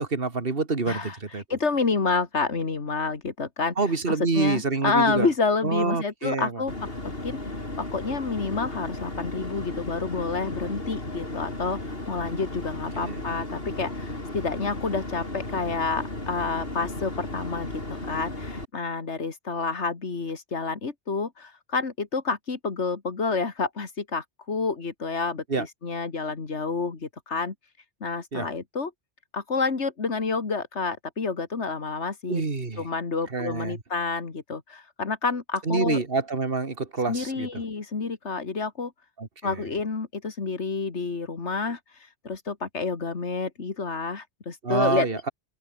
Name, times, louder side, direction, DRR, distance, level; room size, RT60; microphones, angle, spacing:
voice 1, 0.0-1.4 3.8-5.3 5.6-6.6 12.9-13.2 25.5-25.7 28.3-28.5 32.3-32.9 33.3-33.8 35.7-37.6 39.2-39.7 44.6-45.3, right 4 dB, 55° right, 2.4 m, -27 dB
voice 2, 0.9-3.7 4.1-6.7 7.0-27.5 28.0-28.9 29.3-32.4 32.8-36.0 37.1-38.9 39.4-45.1, left 4 dB, 75° left, 2.5 m, -29 dB
sound 1, 6.7-18.7, left 2 dB, 55° left, 5.1 m, -35 dB
open air
omnidirectional pair, 1.2 m